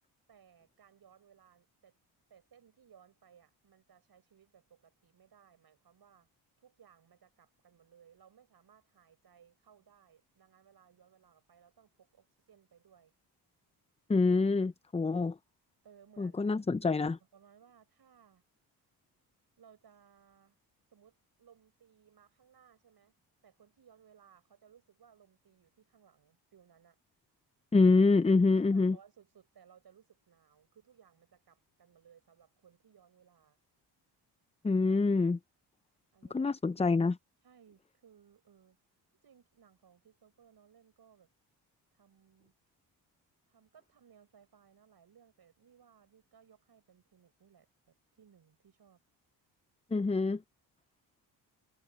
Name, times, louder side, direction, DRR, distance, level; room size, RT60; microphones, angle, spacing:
voice 1, 0.3-2.0 2.3-6.3 6.6-13.1 15.8-16.4 17.3-18.4 19.6-20.6 20.9-23.2 23.4-27.0 28.5-33.6 36.1-36.5 37.4-38.8 39.2-41.3 41.9-42.5 43.5-49.0, right 8 dB, 55° right, 5.9 m, -63 dB
voice 2, 14.1-15.4 16.2-17.2 27.7-29.0 34.6-35.4 36.3-37.2 49.9-50.4, left 3 dB, 15° left, 0.6 m, -26 dB
supercardioid pair, 55°, 45 cm